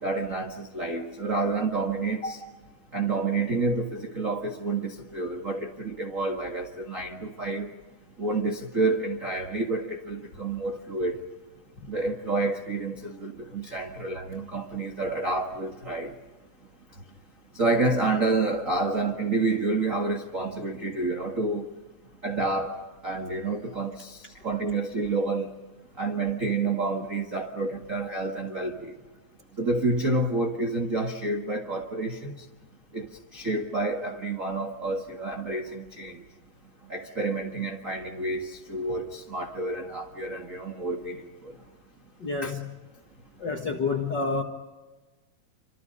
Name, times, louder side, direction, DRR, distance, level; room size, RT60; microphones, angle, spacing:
voice 1, 0.0-2.4 2.9-7.7 8.2-11.2 11.9-16.1 17.5-21.6 22.2-24.2 24.4-25.5 26.0-28.9 29.6-32.4 32.9-33.1 33.3-36.2 36.9-41.5 42.4-42.5, right 3 dB, 45° right, 1.0 m, -29 dB
voice 2, 42.2-42.7 43.4-44.4, left 4 dB, 45° left, 1.4 m, -28 dB
28.0 x 26.0 x 5.4 m
omnidirectional pair, 4.3 m